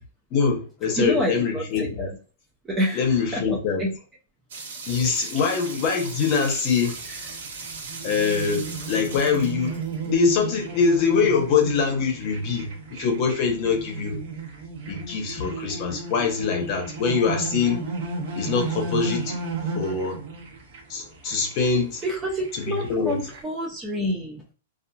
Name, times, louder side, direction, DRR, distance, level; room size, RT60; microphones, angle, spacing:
voice 1, 0.3-2.1 2.9-3.8 4.9-7.0 8.0-9.8 10.1-14.2 14.9-17.8 18.4-19.4 19.7-20.2 20.9-22.0 22.5-23.2, left 5 dB, 30° left, 0.7 m, -24 dB
voice 2, 0.9-2.1 2.6-3.5 3.8-3.9 7.1-7.2 22.0-24.4, equal, 10° right, 0.4 m, -28 dB
sound 1, 4.5-10.3, right 4 dB, 75° right, 1.2 m, -38 dB
sound 2, 6.8-23.4, right 3 dB, 50° right, 0.7 m, -34 dB
2.7 x 2.4 x 2.3 m
supercardioid pair, 170°, 0 cm